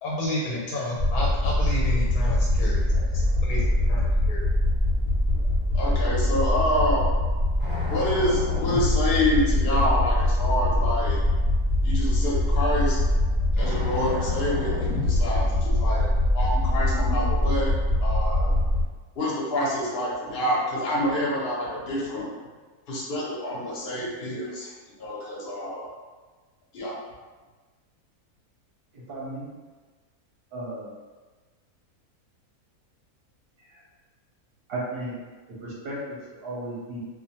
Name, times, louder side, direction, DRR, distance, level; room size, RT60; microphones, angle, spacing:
voice 1, 0.0-3.1 3.4-4.4, left 1 dB, 85° left, -4 dB, 1.1 m, -31 dB
sound 1, 1.0-18.8, left 1 dB, 15° left, 0.7 m, -23 dB
voice 2, 5.7-7.2 7.9-11.2 11.8-13.0 13.5-16.1 16.3-17.7 18.0-18.5 19.2-22.3 22.9-24.7 25.0-25.9 26.7-27.0, left 1 dB, 50° left, -5 dB, 0.7 m, -27 dB
voice 3, 28.9-29.5 30.5-30.9 33.7-33.8 34.7-35.1 35.6-37.0, right 1 dB, 50° right, -6 dB, 0.7 m, -35 dB
2.4 x 2.1 x 2.8 m, 1.3 s
omnidirectional pair, 1.6 m